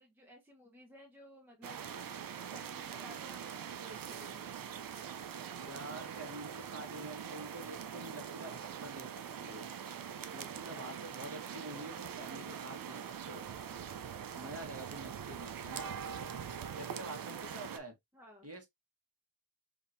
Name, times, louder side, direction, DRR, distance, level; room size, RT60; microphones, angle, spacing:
voice 1, 0.0-3.5 3.8-4.5 10.4-11.0 18.1-18.5, equal, 5° right, 1.1 m, -56 dB
sound 1, 1.6-17.8, right 8 dB, 50° right, 0.6 m, -43 dB
voice 2, 5.6-9.7 10.3-13.5 14.4-16.0 16.7-17.9 18.4-18.7, right 1 dB, 30° right, 1.6 m, -47 dB
5.1 x 2.8 x 2.6 m
wide cardioid pair, 105°, 47 cm